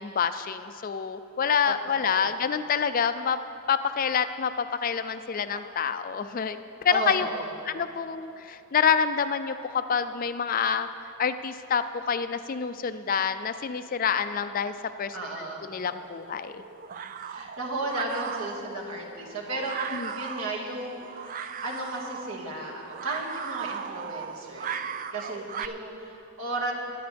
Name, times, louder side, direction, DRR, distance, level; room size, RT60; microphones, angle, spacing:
voice 1, 0.0-3.4 3.7-6.6 6.8-7.3 7.6-10.9 11.2-16.6 19.9-20.1, left 6 dB, 40° left, 11 dB, 0.4 m, -27 dB
voice 2, 1.7-2.4 5.5-5.6 6.9-7.5 15.1-15.6 17.2-26.7, right 2 dB, 70° right, -2 dB, 2.1 m, -35 dB
sound 1, 15.8-25.7, right 7 dB, 35° right, 0.3 m, -38 dB
22.0 x 10.0 x 3.4 m, 2.7 s
head